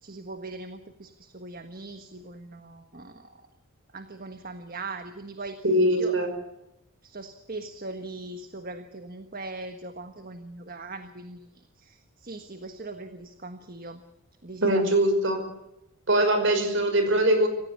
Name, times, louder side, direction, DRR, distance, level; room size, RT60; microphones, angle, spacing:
voice 1, 0.0-3.5 3.9-5.6 6.0-6.1 7.0-14.0 14.4-14.9, right 2 dB, 40° right, 8 dB, 1.4 m, -40 dB
voice 2, 5.6-6.3 14.6-15.5 16.1-17.5, right 1 dB, 55° right, 8 dB, 5.7 m, -22 dB
26.5 x 16.0 x 9.7 m, 0.89 s
head